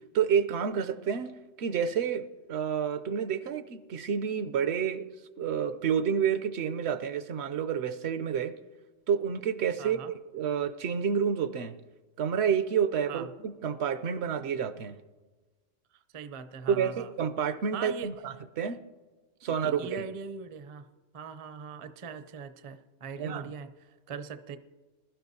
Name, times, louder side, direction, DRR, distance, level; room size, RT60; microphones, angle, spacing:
voice 1, 0.1-1.3 1.6-5.1 5.4-8.5 9.1-10.0 10.3-11.7 12.2-15.0 16.7-18.8 19.4-20.0 23.2-23.4, right 7 dB, 65° right, 12 dB, 0.8 m, -29 dB
voice 2, 9.8-10.1 13.1-13.3 15.9-17.1 17.7-18.1 19.5-20.9 21.1-24.6, right 5 dB, 40° right, 10 dB, 0.5 m, -41 dB
20.5 x 12.5 x 2.7 m, 1.3 s
omnidirectional pair, 1.3 m